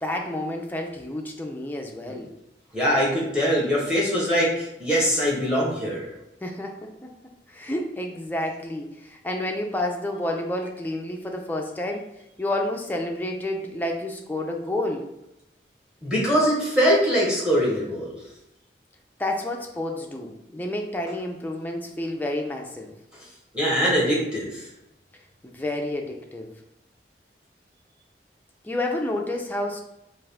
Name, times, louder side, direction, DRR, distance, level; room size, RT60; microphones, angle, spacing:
voice 1, 0.0-2.3 6.4-7.1 7.5-12.1 12.4-15.1 19.2-22.9 25.4-26.5 28.6-29.8, left 1 dB, 10° left, 2 dB, 0.3 m, -30 dB
voice 2, 2.7-6.1 16.0-18.1 23.5-24.6, equal, 5° right, -5 dB, 1.0 m, -22 dB
3.6 x 2.5 x 3.3 m, 0.87 s
head